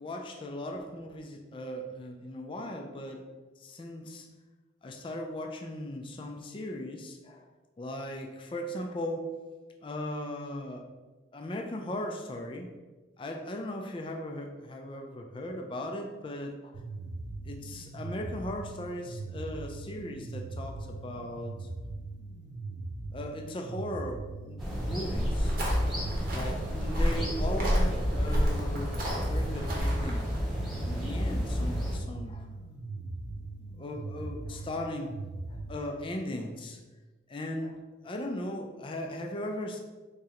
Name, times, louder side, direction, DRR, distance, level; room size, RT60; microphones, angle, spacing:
voice 1, 0.0-3.3 3.6-4.3 4.8-7.5 7.8-9.4 9.8-10.9 11.3-12.7 13.2-16.8 17.5-21.7 23.1-25.6 26.1-32.5 33.8-35.2 35.5-36.8 37.3-39.8, left 1 dB, 25° left, 2 dB, 0.3 m, -38 dB
sound 1, 16.7-35.8, right 2 dB, 70° right, 0.5 m, -40 dB
sound 2, 24.6-32.0, equal, ahead, 1.0 m, -32 dB
sound 3, 25.1-30.4, equal, 45° right, 0.9 m, -30 dB
3.6 x 3.1 x 2.8 m, 1.2 s
head